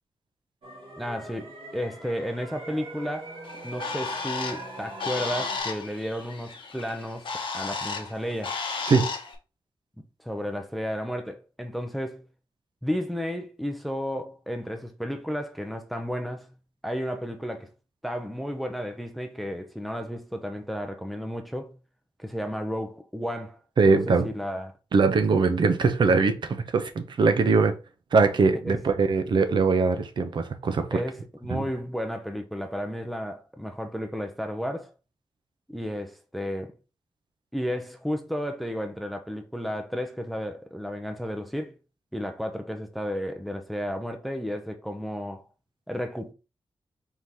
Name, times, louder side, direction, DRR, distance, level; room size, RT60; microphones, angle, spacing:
sound 1, 0.6-5.6, right 1 dB, 90° right, 1.6 m, -41 dB
voice 1, 1.0-3.3 3.6-7.3 7.5-8.6 10.2-12.2 12.8-16.5 16.8-17.7 18.0-21.7 22.2-24.7 28.6-28.8 30.9-34.9 35.7-36.7 37.5-41.8 42.1-45.4 45.9-46.3, equal, ahead, 0.5 m, -33 dB
Bird, 3.4-9.3, left 4 dB, 65° left, 0.9 m, -34 dB
voice 2, 23.8-24.3 24.9-27.8 28.1-31.0 31.5-31.6, right 4 dB, 55° right, 0.6 m, -22 dB
4.6 x 3.7 x 2.7 m
wide cardioid pair, 175°, 9 cm